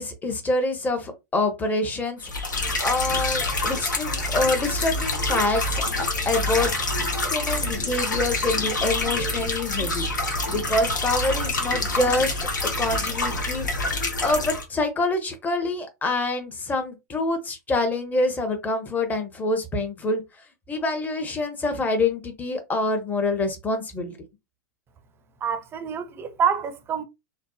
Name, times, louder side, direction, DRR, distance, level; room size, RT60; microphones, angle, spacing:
voice 1, 0.0-2.3 2.8-5.8 6.3-6.7 7.2-10.1 10.5-12.3 12.6-13.7 14.2-20.2 20.7-24.2, left 2 dB, 15° left, 0.7 m, -26 dB
sound 1, 2.2-14.6, left 2 dB, 90° left, 0.6 m, -26 dB
voice 2, 25.4-27.0, right 7 dB, 25° right, 0.4 m, -26 dB
2.6 x 2.1 x 2.3 m
hypercardioid pair, 100°, 10 cm